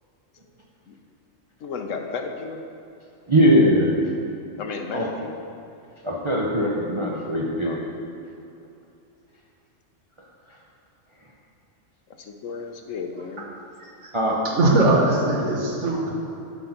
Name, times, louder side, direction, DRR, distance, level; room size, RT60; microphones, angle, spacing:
voice 1, 1.6-2.6 4.6-5.4 7.6-7.9 12.2-13.5, left 5 dB, 75° left, 4 dB, 1.0 m, -33 dB
voice 2, 3.3-4.0 4.9-5.1 6.0-7.8 14.1-14.4, equal, 30° right, -3 dB, 0.5 m, -20 dB
voice 3, 14.4-16.1, right 2 dB, 65° right, -2 dB, 1.6 m, -20 dB
10.0 x 4.0 x 5.8 m, 2.7 s
omnidirectional pair, 1.4 m